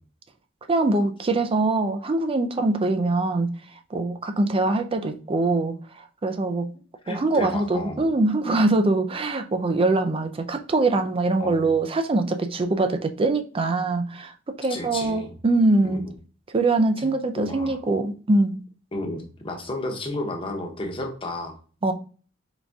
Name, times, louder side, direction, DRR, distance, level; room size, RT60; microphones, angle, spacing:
voice 1, 0.7-3.5 3.9-5.8 6.2-6.7 7.1-16.0 16.5-18.6 21.8-21.9, right 2 dB, 30° right, 0.4 m, -23 dB
voice 2, 7.0-8.1 11.4-11.7 14.7-15.3 15.8-16.1 17.0-17.8 18.9-21.6, left 2 dB, 25° left, 0.9 m, -33 dB
4.0 x 3.5 x 3.5 m
head